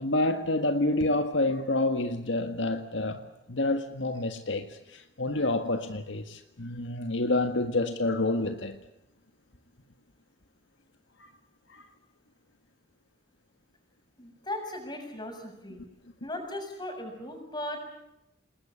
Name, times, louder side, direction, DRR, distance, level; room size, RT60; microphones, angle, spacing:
voice 1, 0.0-8.8 11.2-11.3 11.7-11.8, left 2 dB, 75° left, 1.7 m, -28 dB
voice 2, 14.2-15.8 16.2-17.8, left 1 dB, 20° left, 6.8 m, -37 dB
29.0 x 20.5 x 8.6 m
head